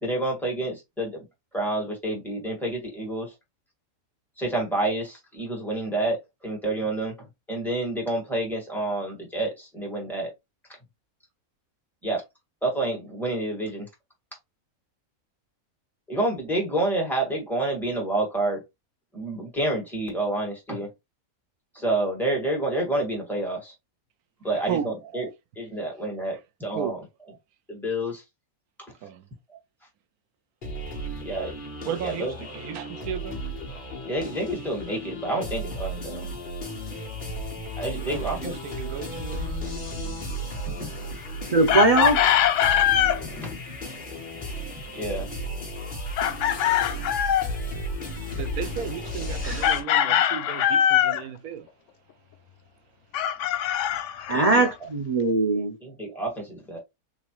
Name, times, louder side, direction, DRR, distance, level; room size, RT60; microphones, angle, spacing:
voice 1, 0.0-1.3 1.5-3.3 4.4-10.3 12.0-12.2 12.6-13.9 16.1-18.6 19.1-20.9 21.7-23.7 24.4-25.3 25.6-27.0 27.7-28.2 29.5-29.6 31.2-31.6 32.0-32.3 34.0-36.3 37.8-38.5 40.0-40.3 40.7-41.0 43.1-43.6 44.8-45.3 54.3-54.6 55.8-56.8, right 2 dB, ahead, 2.1 m, -29 dB
sound 1, 30.6-49.8, equal, 35° left, 1.3 m, -34 dB
voice 2, 31.8-33.4 37.9-39.6 48.4-51.7, right 8 dB, 90° right, 1.2 m, -34 dB
voice 3, 41.5-42.2 46.9-47.0 49.4-49.7 54.3-55.8, right 2 dB, 70° right, 0.3 m, -21 dB
Chicken rooster, 41.7-43.2 46.2-47.5 49.6-51.2 53.1-54.7, left 10 dB, 70° left, 0.8 m, -22 dB
3.9 x 3.0 x 3.0 m
omnidirectional pair, 1.5 m